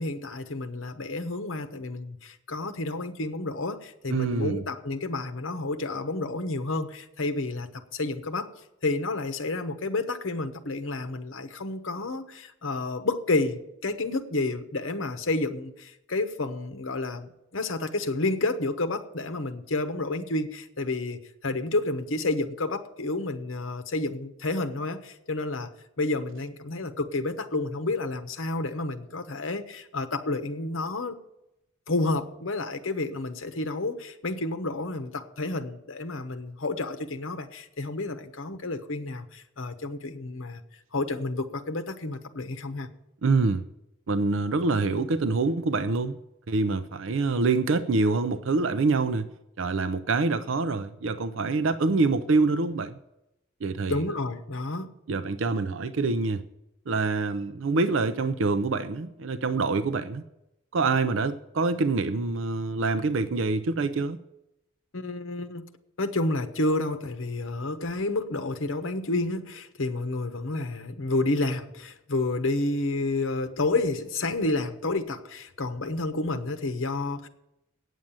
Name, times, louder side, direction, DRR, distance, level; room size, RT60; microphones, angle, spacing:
voice 1, 0.0-8.5 8.8-25.7 26.0-31.2 31.9-40.6 40.9-42.9 53.9-54.9 64.9-65.6 66.0-77.3, left 2 dB, 65° left, 1.0 m, -30 dB
voice 2, 4.1-4.6 43.2-43.6 44.1-46.2 46.5-49.3 49.6-52.9 53.6-54.0 55.1-56.4 56.9-60.2 60.7-64.2, right 3 dB, 65° right, 0.5 m, -25 dB
9.1 x 7.4 x 8.8 m
head